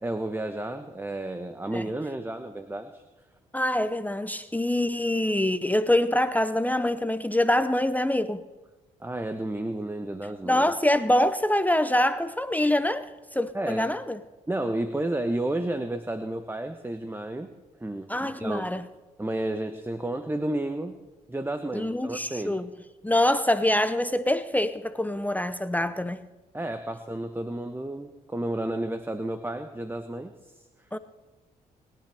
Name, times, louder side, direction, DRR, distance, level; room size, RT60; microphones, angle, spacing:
voice 1, 0.0-3.0 9.0-10.6 13.5-13.9 14.5-17.5 17.8-18.7 19.2-21.0 21.3-22.6 26.5-30.6, right 1 dB, 15° right, 1.0 m, -31 dB
voice 2, 3.5-8.4 10.5-13.1 13.3-14.2 18.1-18.9 21.7-22.7 23.0-26.3 30.9-31.0, left 1 dB, 10° left, 0.8 m, -25 dB
26.5 x 11.0 x 3.5 m
supercardioid pair, 50°, 16 cm